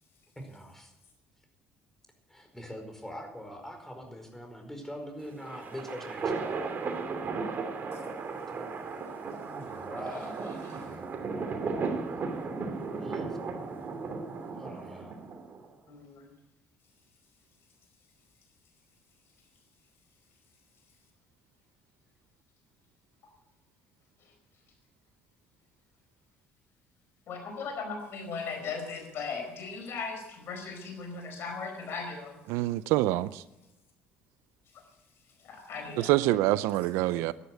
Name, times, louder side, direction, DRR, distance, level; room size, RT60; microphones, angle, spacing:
voice 1, 0.3-0.9 2.3-6.3 8.3-9.0 9.4-11.1 12.9-13.4 14.5-15.1, equal, 10° left, 4.9 m, -43 dB
sound 1, 5.2-15.7, right 4 dB, 50° right, 2.9 m, -35 dB
voice 2, 15.9-16.3 24.2-24.3 27.3-32.4 34.7-34.8 35.4-36.4, left 4 dB, 65° left, 4.9 m, -38 dB
voice 3, 32.5-33.4 36.0-37.3, right 16 dB, 80° right, 0.5 m, -26 dB
13.0 x 11.0 x 7.9 m
supercardioid pair, 65°, 4 cm